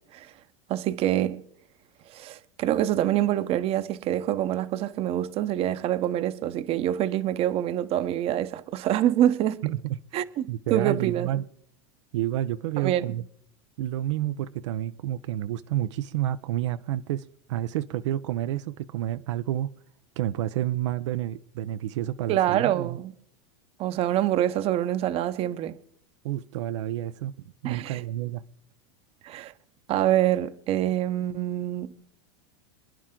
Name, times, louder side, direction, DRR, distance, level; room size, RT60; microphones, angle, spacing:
voice 1, 0.7-1.4 2.1-9.6 10.1-11.3 12.8-13.1 22.3-23.1 23.8-25.8 27.6-28.0 29.2-29.5 29.9-31.9, right 12 dB, 40° right, 0.9 m, -26 dB
voice 2, 9.6-10.0 10.5-11.4 12.1-13.2 13.8-19.7 20.2-23.0 26.2-28.4, right 13 dB, 75° right, 0.6 m, -29 dB
27.0 x 10.0 x 3.8 m
supercardioid pair, 120°, 15 cm